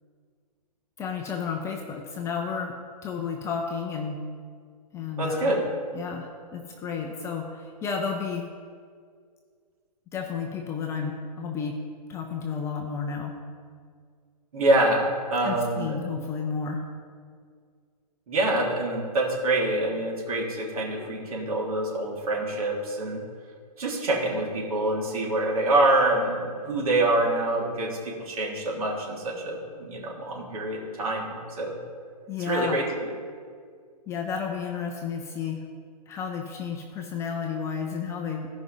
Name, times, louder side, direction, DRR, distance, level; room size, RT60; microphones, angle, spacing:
voice 1, 1.0-2.7 3.0-4.2 4.9-5.5 5.9-8.5 10.1-11.8 12.1-13.3 15.4-16.8 32.3-32.8 34.1-35.6 36.1-38.5, left 6 dB, 15° left, 1 dB, 0.7 m, -32 dB
voice 2, 5.2-5.6 14.5-16.0 18.3-23.2 23.8-31.8 32.4-33.1, right 2 dB, 60° right, -3 dB, 3.4 m, -26 dB
16.0 x 5.5 x 5.3 m, 2.1 s
hypercardioid pair, 140°, 21 cm